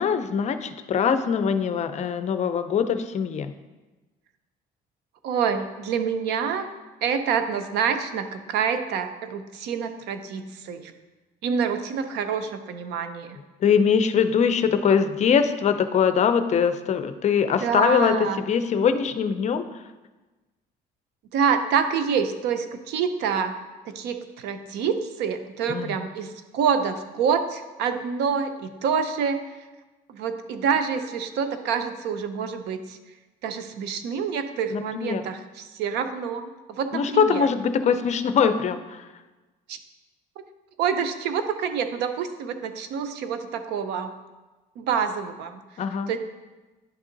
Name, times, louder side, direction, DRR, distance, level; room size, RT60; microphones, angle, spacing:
voice 1, 0.0-3.5 13.6-19.6 25.7-26.0 34.7-35.2 36.9-39.0 45.8-46.1, left 7 dB, 45° left, 10 dB, 0.5 m, -22 dB
voice 2, 5.2-6.7 7.0-10.9 11.4-13.4 17.6-18.4 21.3-23.6 23.9-29.4 30.1-33.0 33.4-37.5 39.7-39.8 40.8-44.1 44.8-45.6 46.1-46.2, right 6 dB, 85° right, 8 dB, 0.6 m, -27 dB
10.5 x 3.6 x 3.9 m, 1.2 s
cardioid pair, 110°, 17 cm